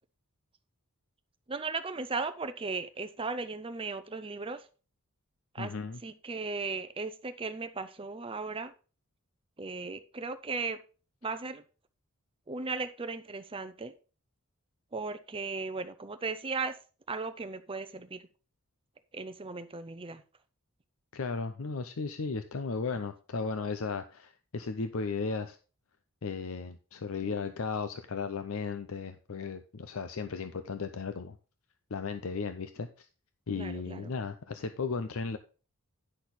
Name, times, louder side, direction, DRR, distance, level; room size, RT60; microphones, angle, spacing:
voice 1, 1.5-4.7 5.5-5.7 6.0-8.7 9.6-10.8 11.2-11.6 12.5-13.9 14.9-16.8 17.1-18.3 19.1-20.2 27.2-27.3 33.5-34.1, right 4 dB, 25° right, 10 dB, 0.6 m, -36 dB
voice 2, 5.6-6.0 21.1-25.6 26.2-31.4 31.9-33.1 33.5-35.4, left 4 dB, 70° left, 9 dB, 0.6 m, -35 dB
9.9 x 6.3 x 4.1 m, 0.36 s
head